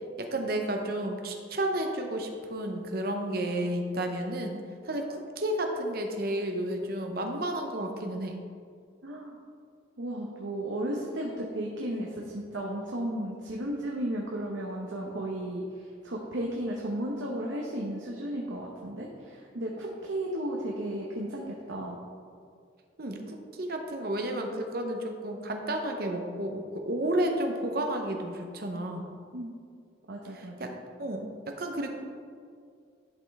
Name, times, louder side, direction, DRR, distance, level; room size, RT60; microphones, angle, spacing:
voice 1, 0.2-4.6 4.8-8.4 23.0-29.1 30.3-30.7 31.0-31.9, right 1 dB, 50° right, 3 dB, 0.7 m, -32 dB
voice 2, 9.0-9.4 10.0-22.0 29.3-29.5 30.1-30.8, right 1 dB, 80° right, -2 dB, 0.8 m, -34 dB
11.0 x 5.3 x 3.5 m, 2.2 s
head